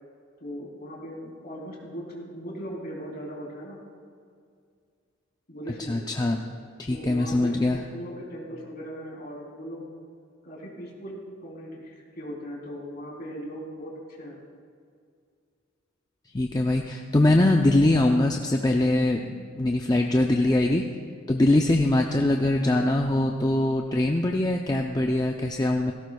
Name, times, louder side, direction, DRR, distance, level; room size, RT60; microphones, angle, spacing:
voice 1, 0.4-3.8 5.5-6.0 6.9-9.9 10.4-14.4 21.8-21.9, equal, 50° left, -3 dB, 3.6 m, -38 dB
voice 2, 5.9-6.4 6.8-7.8 16.3-20.8 21.3-25.9, left 1 dB, 20° left, 2 dB, 0.5 m, -22 dB
17.5 x 16.5 x 2.3 m, 2.2 s
head